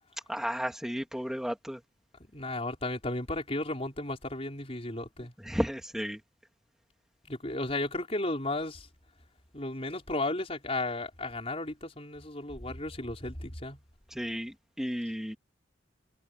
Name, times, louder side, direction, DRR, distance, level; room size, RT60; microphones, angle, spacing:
voice 1, 0.3-1.8 5.4-6.2 14.1-15.4, equal, 5° right, 3.2 m, -33 dB
voice 2, 2.3-5.3 7.3-8.9 9.5-13.8, left 2 dB, 35° left, 4.7 m, -34 dB
head